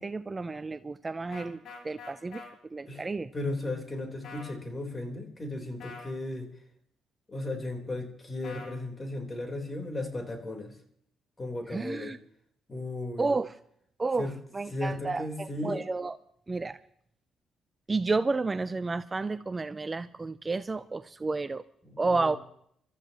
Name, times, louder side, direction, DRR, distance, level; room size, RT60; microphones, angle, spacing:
voice 1, 0.0-1.6 1.8-2.4 2.7-3.3 11.7-12.2 13.2-13.6 14.0-16.2 16.5-16.8 17.9-21.6 22.0-22.4, right 3 dB, 25° right, 13 dB, 0.5 m, -31 dB
sound 1, 1.3-2.5 4.2-4.5 5.8-6.1 8.4-8.8, left 4 dB, 65° left, 4.3 m, -44 dB
voice 2, 3.3-6.5 7.3-10.7 11.4-12.1 12.7-13.3 14.2-14.3 14.7-15.8 21.8-22.3, left 2 dB, 25° left, 3 dB, 4.0 m, -35 dB
27.0 x 14.0 x 3.0 m, 0.68 s
cardioid pair, 90°, 0 cm